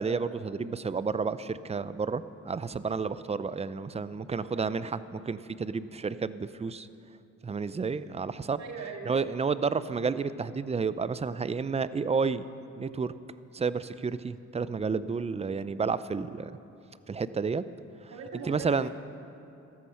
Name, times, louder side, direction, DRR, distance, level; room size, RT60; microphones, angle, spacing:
voice 1, 0.0-6.9 7.4-8.6 9.1-12.5 12.8-13.1 13.5-16.5 17.1-17.6 18.5-18.9, right 5 dB, 20° right, 15 dB, 0.5 m, -31 dB
voice 2, 8.6-9.1 18.1-18.9, right 5 dB, 65° right, 2 dB, 2.3 m, -40 dB
15.5 x 14.0 x 5.8 m, 2.8 s
cardioid pair, 90°, 30 cm